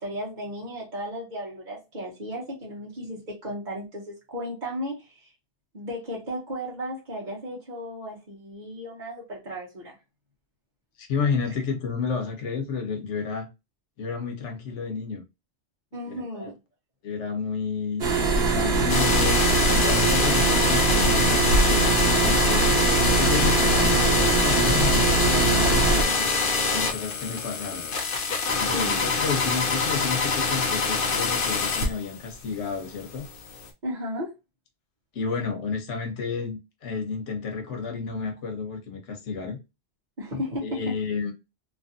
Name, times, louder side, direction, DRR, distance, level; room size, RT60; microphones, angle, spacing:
voice 1, 0.0-5.3 5.7-10.0 15.9-16.5 28.7-29.1 33.8-34.3 40.2-40.8, equal, 45° right, 1.0 m, -34 dB
voice 2, 11.0-13.5 14.0-15.2 16.1-16.5 17.0-18.0 18.5-19.4 19.7-26.3 26.7-27.9 28.6-33.2 35.1-39.6 40.6-41.3, left 5 dB, 90° left, 1.2 m, -31 dB
sound 1, 18.0-26.0, right 3 dB, 70° right, 1.2 m, -22 dB
sound 2, 18.9-32.3 32.7-33.7, left 4 dB, 55° left, 0.8 m, -25 dB
2.9 x 2.6 x 2.6 m
omnidirectional pair, 1.2 m